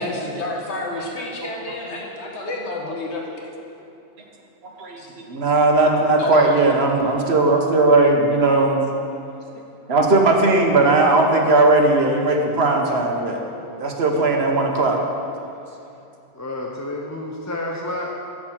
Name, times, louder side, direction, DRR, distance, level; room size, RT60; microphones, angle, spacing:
voice 1, 0.0-3.4 4.9-5.1 6.1-6.5, left 2 dB, 70° left, -1 dB, 1.7 m, -30 dB
voice 2, 5.3-8.9 9.9-13.4 13.8-15.0, right 2 dB, 65° right, 2 dB, 1.3 m, -17 dB
voice 3, 16.3-18.1, left 1 dB, 20° left, -1 dB, 0.6 m, -29 dB
7.9 x 7.2 x 6.4 m, 2.7 s
omnidirectional pair, 1.2 m